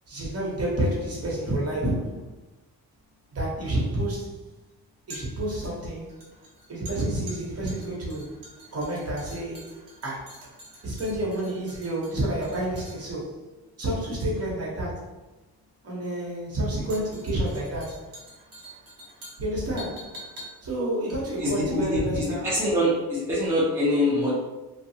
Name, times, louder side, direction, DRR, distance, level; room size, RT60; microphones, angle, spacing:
voice 1, 0.1-2.3 3.3-4.4 5.1-6.2 6.7-8.4 8.7-9.8 10.0-10.4 10.8-13.4 13.8-15.0 15.8-18.1 19.4-20.2 20.6-22.5, right 1 dB, 40° right, -5 dB, 1.0 m, -29 dB
sound 1, 3.0-22.2 22.5-22.6, equal, 60° right, 1.1 m, -47 dB
voice 2, 21.4-24.3, left 1 dB, 5° right, -7 dB, 0.6 m, -24 dB
2.7 x 2.3 x 2.7 m, 1.1 s
cardioid pair, 125°, 38 cm